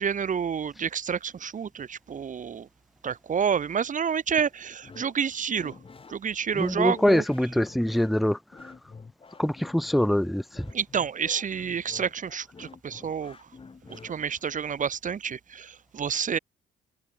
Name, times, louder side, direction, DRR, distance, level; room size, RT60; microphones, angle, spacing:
voice 1, 0.0-2.7 3.0-5.8 6.1-7.2 10.7-13.4 13.9-16.4, right 7 dB, 40° right, 1.0 m, -29 dB
sound 1, 4.8-14.6, left 4 dB, 25° left, 1.3 m, -49 dB
voice 2, 6.6-8.7 9.4-10.7, left 1 dB, ahead, 0.3 m, -24 dB
cardioid pair, 90°, 20 cm